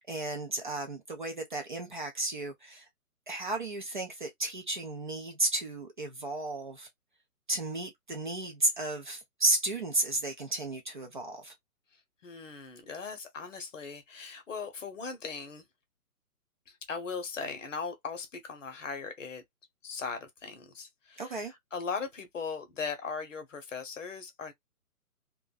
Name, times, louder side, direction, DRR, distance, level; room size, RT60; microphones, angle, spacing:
voice 1, 0.0-2.9 3.3-6.9 7.5-11.5 21.2-21.5, right 2 dB, 35° right, 0.5 m, -33 dB
voice 2, 12.2-15.6 16.7-19.4 19.8-24.5, left 5 dB, 55° left, 0.8 m, -39 dB
2.5 x 2.2 x 2.3 m
figure-of-eight pair, 135°, 46 cm